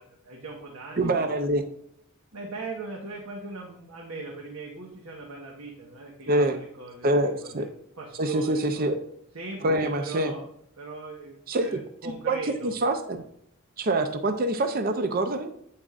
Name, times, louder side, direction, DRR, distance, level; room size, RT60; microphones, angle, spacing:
voice 1, 0.0-1.4 2.3-7.7 8.0-9.0 9.3-10.5 10.8-12.7, right 3 dB, 90° right, -1 dB, 1.4 m, -39 dB
voice 2, 1.0-1.6 6.3-6.6 7.0-7.6 8.2-8.9 9.6-10.3 11.5-13.2 13.8-15.5, right 1 dB, 45° right, 7 dB, 0.6 m, -25 dB
9.0 x 7.4 x 2.5 m, 0.72 s
head